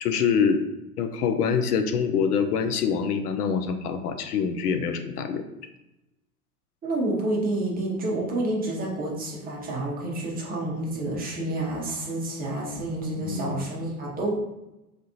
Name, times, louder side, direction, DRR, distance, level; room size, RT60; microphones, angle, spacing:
voice 1, 0.0-0.6 1.0-5.4 13.2-13.7, left 6 dB, 70° left, 8 dB, 0.5 m, -25 dB
voice 2, 6.8-14.4, right 1 dB, 20° right, -3 dB, 0.7 m, -29 dB
3.5 x 2.5 x 2.7 m, 0.94 s
figure-of-eight pair, 85°, 47 cm